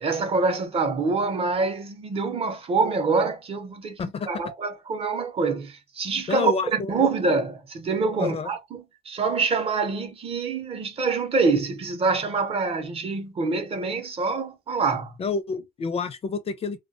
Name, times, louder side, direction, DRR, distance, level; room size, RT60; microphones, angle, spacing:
voice 1, 0.0-15.1, right 4 dB, 35° right, 0.7 m, -26 dB
voice 2, 6.3-6.9 8.2-8.5 15.2-16.8, left 5 dB, 35° left, 0.5 m, -28 dB
2.2 x 2.2 x 2.6 m
cardioid pair, 110°, 17 cm